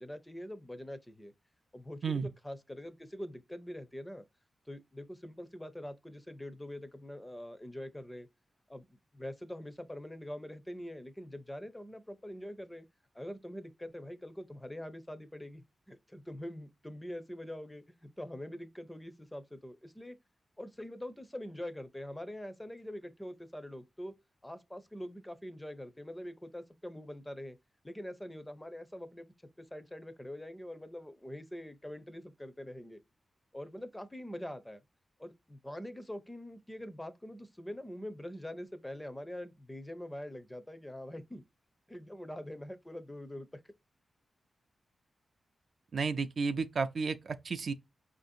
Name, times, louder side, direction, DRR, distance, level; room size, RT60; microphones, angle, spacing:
voice 1, 0.0-1.3 1.7-4.2 4.7-8.3 8.7-12.9 13.1-20.2 20.6-24.1 24.4-27.6 27.8-29.3 29.7-33.0 33.5-34.8 35.2-41.4 41.9-43.7, left 1 dB, 10° left, 0.5 m, -44 dB
voice 2, 45.9-47.7, right 4 dB, 55° right, 0.3 m, -32 dB
5.1 x 2.5 x 2.5 m
wide cardioid pair, 130°, 0 cm